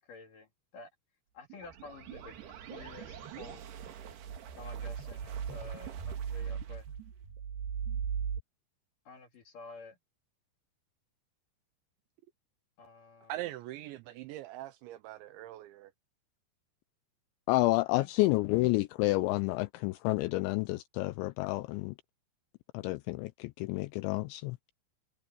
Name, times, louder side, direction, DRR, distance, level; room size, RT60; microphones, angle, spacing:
voice 1, 0.1-0.9 1.3-2.3 2.7-3.7 4.5-6.8 9.0-10.0 12.8-13.3 17.9-18.1, left 4 dB, 50° left, 3.3 m, -50 dB
sound 1, 1.5-8.4, right 7 dB, 65° right, 3.8 m, -39 dB
voice 2, 13.3-15.9, right 14 dB, 80° right, 3.0 m, -42 dB
voice 3, 17.5-22.0 22.7-24.6, left 21 dB, 80° left, 2.8 m, -29 dB
omnidirectional pair, 5.4 m